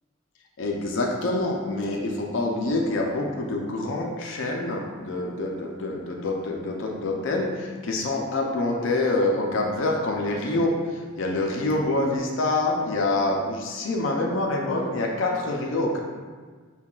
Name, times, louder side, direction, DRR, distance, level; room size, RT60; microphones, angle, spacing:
voice 1, 0.6-16.0, left 2 dB, 65° left, 0 dB, 0.4 m, -26 dB
5.5 x 2.2 x 2.4 m, 1.5 s
head